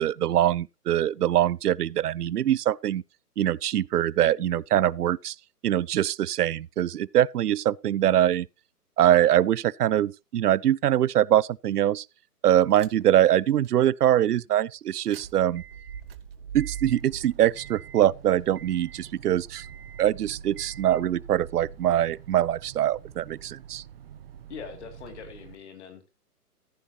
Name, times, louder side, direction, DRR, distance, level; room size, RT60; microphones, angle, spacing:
voice 1, 0.0-3.0 3.4-5.3 5.6-8.5 9.0-12.0 12.4-15.6 16.5-19.7 20.0-23.8, right 12 dB, 75° right, 0.5 m, -23 dB
sound 1, 12.7-13.2 13.6-13.7 14.9-25.6, right 8 dB, 40° right, 1.0 m, -43 dB
voice 2, 24.5-26.1, left 7 dB, 45° left, 2.6 m, -42 dB
14.0 x 9.7 x 2.9 m
figure-of-eight pair, 135°, 47 cm